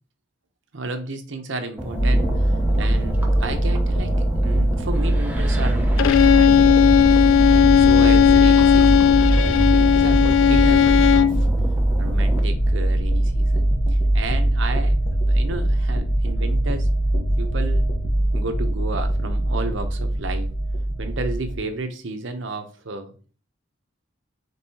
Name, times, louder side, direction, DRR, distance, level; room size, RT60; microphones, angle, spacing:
voice 1, 0.7-4.2 4.4-6.7 7.4-11.5 12.0-16.9 17.4-17.9 18.3-20.5 21.0-23.1, right 3 dB, 70° right, 6 dB, 0.8 m, -32 dB
sound 1, 1.8-12.4, right 1 dB, 10° right, 0.6 m, -30 dB
sound 2, 1.9-21.6, right 1 dB, 45° left, 0.9 m, -21 dB
Bowed string instrument, 6.0-11.4, left 9 dB, 90° left, 0.3 m, -16 dB
5.4 x 3.5 x 2.8 m, 0.39 s
head